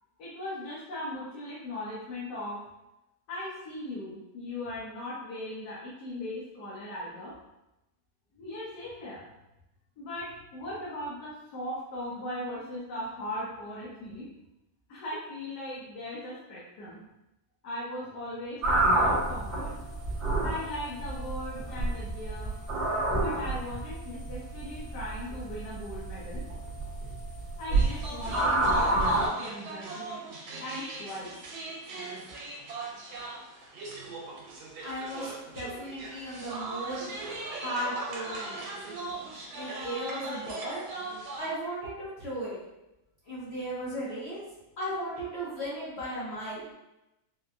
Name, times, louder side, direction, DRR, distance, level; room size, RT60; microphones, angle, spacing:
voice 1, 0.2-2.6 3.3-7.3 8.3-9.2 10.0-14.3 14.9-17.0 17.6-19.8 20.4-22.5 23.2-26.4 27.6-30.2 30.6-31.3, left 1 dB, 65° left, -8 dB, 1.3 m, -38 dB
sound 1, 18.6-29.3, right 2 dB, 40° right, 0.9 m, -28 dB
sound 2, 27.7-41.5, right 3 dB, 90° right, 1.4 m, -40 dB
voice 2, 34.8-37.0 37.5-38.6 39.5-40.8 41.4-42.6 43.3-44.4 44.8-46.7, right 1 dB, 50° left, -8 dB, 0.8 m, -36 dB
4.4 x 2.2 x 2.5 m, 0.94 s
omnidirectional pair, 2.1 m